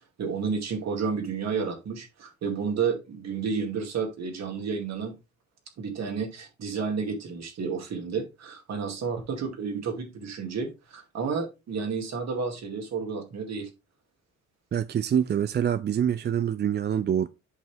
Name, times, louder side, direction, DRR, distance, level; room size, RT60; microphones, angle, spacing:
voice 1, 0.2-5.2 5.8-13.7, right 5 dB, 60° right, 2.4 m, -31 dB
voice 2, 14.7-17.3, right 9 dB, 35° right, 0.4 m, -25 dB
8.2 x 5.4 x 3.5 m
cardioid pair, 90°, 30 cm